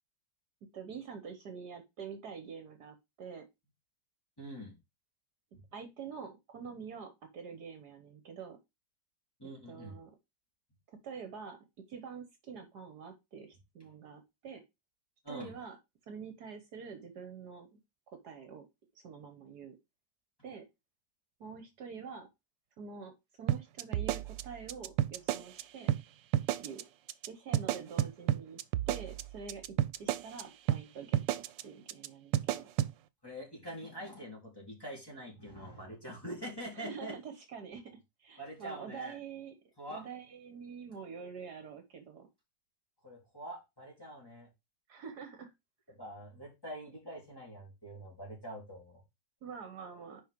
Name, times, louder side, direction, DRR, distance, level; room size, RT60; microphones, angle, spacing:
voice 1, 0.7-3.4 5.7-8.6 9.7-10.1 10.9-11.6 11.9-14.6 15.3-15.8 16.1-17.8 18.1-18.6 18.9-19.8 20.4-20.7 21.4-22.3 22.8-25.9 26.6-26.8 27.3-28.6 28.9-29.6 30.0-32.7 36.7-39.5 39.9-42.3 44.9-45.5 49.4-50.2, right 6 dB, 65° right, 7 dB, 1.6 m, -46 dB
voice 2, 4.4-4.8 5.5-5.6 9.4-10.0 15.2-15.6 33.2-37.2 38.4-39.2 39.8-40.1 43.0-44.5 45.9-49.0, equal, 10° left, -4 dB, 3.6 m, -45 dB
sound 1, 23.5-25.6 25.9-26.0 26.3-26.8 27.1-27.3 27.5-30.4 30.7-30.8 31.1-31.6 31.9-32.1 32.3-32.9, right 13 dB, 90° right, 1.3 m, -31 dB
6.2 x 5.1 x 5.2 m, 0.23 s
omnidirectional pair, 1.9 m